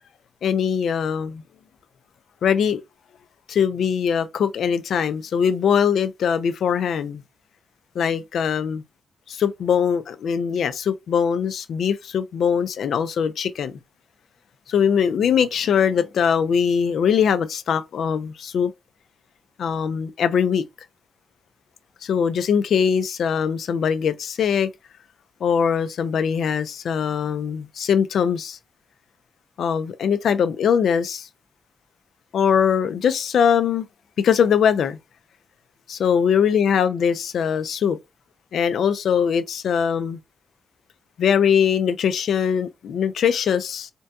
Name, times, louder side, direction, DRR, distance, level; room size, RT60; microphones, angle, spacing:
voice 1, 0.4-1.4 2.4-2.8 3.5-7.2 8.0-8.8 9.3-13.7 14.7-18.7 19.6-20.6 22.0-24.7 25.4-28.6 29.6-31.3 32.3-33.8 34.2-35.0 35.9-38.0 38.5-40.2 41.2-43.9, left 7 dB, 80° left, 0.4 m, -21 dB
4.4 x 2.7 x 2.3 m
cardioid pair, 95°, 0 cm